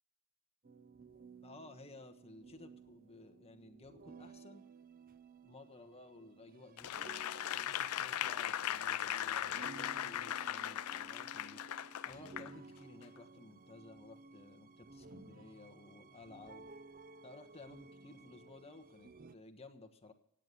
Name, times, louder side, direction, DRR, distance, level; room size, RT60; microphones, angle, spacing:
sound 1, 0.6-19.3, right 4 dB, 40° right, 0.6 m, -56 dB
voice 1, 1.4-4.7 5.4-6.9 7.5-11.6 12.0-16.7 17.2-20.1, left 2 dB, 30° left, 7 dB, 1.3 m, -56 dB
Applause / Crowd, 6.8-12.5 13.0-13.2, left 11 dB, 70° left, 0.4 m, -38 dB
16.5 x 9.3 x 7.0 m, 0.74 s
head